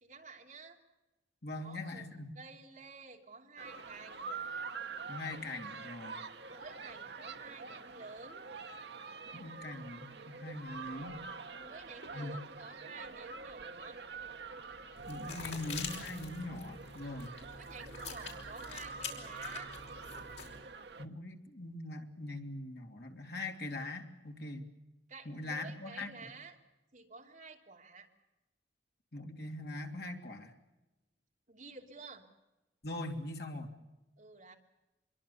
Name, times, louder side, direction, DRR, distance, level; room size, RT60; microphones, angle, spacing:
voice 1, 0.0-0.8 1.5-2.1 2.3-4.3 6.5-8.5 11.5-14.0 17.4-19.7 25.1-26.6 26.9-28.1 31.5-32.3 34.2-34.5, right 4 dB, 45° right, 1 dB, 2.9 m, -51 dB
voice 2, 1.4-2.3 5.1-6.2 9.3-11.2 12.1-12.3 15.1-17.3 21.0-24.6 25.2-26.3 29.1-30.5 32.8-33.7, left 2 dB, 60° left, 3 dB, 2.9 m, -42 dB
sound 1, 3.6-21.1, right 4 dB, 65° right, 1.2 m, -46 dB
sound 2, 15.0-20.6, left 5 dB, 80° left, 5.2 m, -45 dB
26.0 x 22.5 x 7.0 m, 1.0 s
head